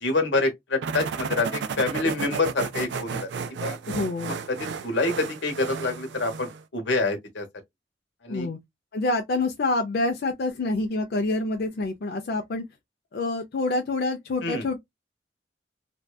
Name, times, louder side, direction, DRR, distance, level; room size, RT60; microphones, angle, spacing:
voice 1, 0.0-3.3 3.6-3.8 4.5-7.5 8.2-8.5 14.4-14.6, left 3 dB, 90° left, 0.9 m, -27 dB
sound 1, 0.8-6.6, right 5 dB, 70° right, 0.4 m, -33 dB
voice 2, 3.9-4.4 8.3-8.6 8.9-12.6 13.1-14.8, left 2 dB, 55° left, 0.4 m, -27 dB
2.6 x 2.2 x 2.2 m
head